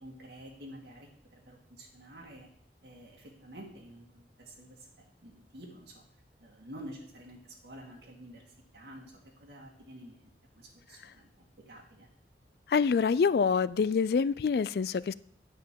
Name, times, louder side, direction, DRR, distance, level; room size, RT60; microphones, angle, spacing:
voice 1, 0.0-2.5 2.8-6.0 6.4-10.2 10.5-12.1, equal, 75° right, -1 dB, 2.1 m, -50 dB
voice 2, 12.7-15.1, left 5 dB, 60° left, 19 dB, 0.3 m, -26 dB
9.4 x 5.3 x 7.6 m, 0.64 s
head